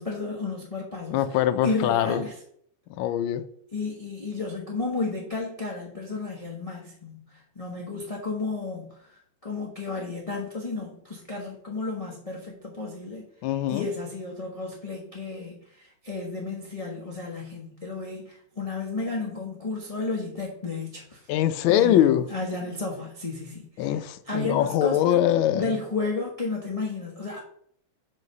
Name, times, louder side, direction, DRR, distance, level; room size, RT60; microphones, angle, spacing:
voice 1, 0.0-2.3 3.7-13.3 13.7-21.3 21.7-24.0 24.3-25.2 25.5-27.4, left 3 dB, 25° left, 0.8 m, -32 dB
voice 2, 1.1-2.2 3.0-3.4 13.4-13.9 21.3-22.2 23.8-25.8, left 11 dB, 80° left, 1.3 m, -23 dB
7.3 x 3.2 x 5.3 m
omnidirectional pair, 2.3 m